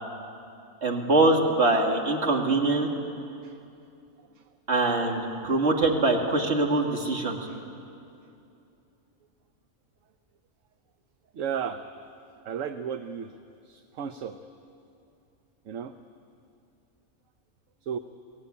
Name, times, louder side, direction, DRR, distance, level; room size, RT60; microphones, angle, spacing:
voice 1, 0.8-2.9 4.7-7.4, right 2 dB, 55° right, 2 dB, 2.4 m, -23 dB
voice 2, 11.3-11.8 12.5-13.3 13.7-14.4 15.7-15.9 17.8-18.0, right 7 dB, 70° right, 9 dB, 1.1 m, -33 dB
23.0 x 17.5 x 9.8 m, 2.7 s
omnidirectional pair, 1.4 m